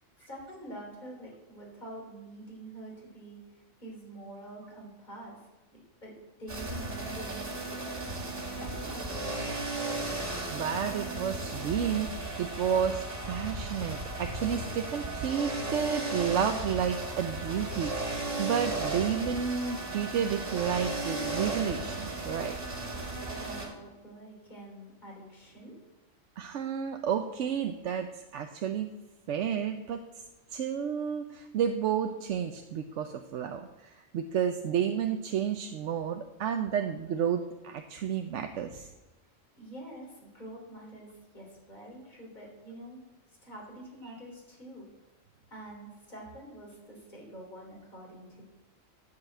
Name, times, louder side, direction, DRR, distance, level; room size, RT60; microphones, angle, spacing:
voice 1, 0.2-5.5 6.0-9.6 23.4-25.7 39.6-43.0 43.4-44.9 45.5-48.4, right 1 dB, 35° left, -3 dB, 3.6 m, -46 dB
sound 1, 6.5-23.7, right 2 dB, 45° right, 2.5 m, -35 dB
voice 2, 10.5-22.5 26.4-28.9 29.3-30.2 30.5-38.9 44.1-44.2, right 8 dB, 70° right, 6 dB, 0.9 m, -31 dB
11.5 x 5.7 x 7.7 m, 1.1 s
omnidirectional pair, 1.4 m